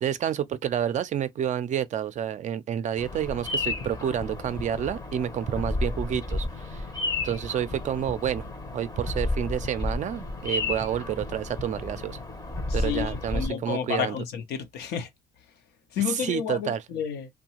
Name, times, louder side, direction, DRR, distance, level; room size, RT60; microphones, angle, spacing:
voice 1, 0.0-6.9 7.2-8.4 8.7-12.2 12.7-14.2 16.1-16.8, right 9 dB, 45° right, 0.4 m, -29 dB
Bird vocalization bird call bird song, 3.0-13.5, left 2 dB, 20° left, 0.7 m, -32 dB
voice 2, 12.8-15.1 15.9-17.3, left 8 dB, 75° left, 0.7 m, -31 dB
2.7 x 2.2 x 2.9 m
cardioid pair, 110°, 17 cm